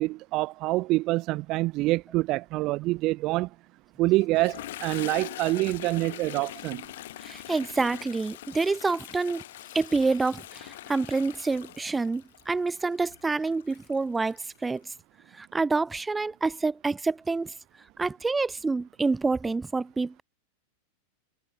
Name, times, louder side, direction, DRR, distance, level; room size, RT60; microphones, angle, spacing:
voice 1, 0.0-3.5 4.0-6.8, right 20 dB, 40° right, 0.7 m, -26 dB
Toilet flush, 4.2-14.8, left 15 dB, 55° left, 5.0 m, -43 dB
voice 2, 7.2-9.4 9.7-14.8 15.3-17.5 18.0-20.2, right 3 dB, 10° right, 1.0 m, -27 dB
figure-of-eight pair, 90°, 0 cm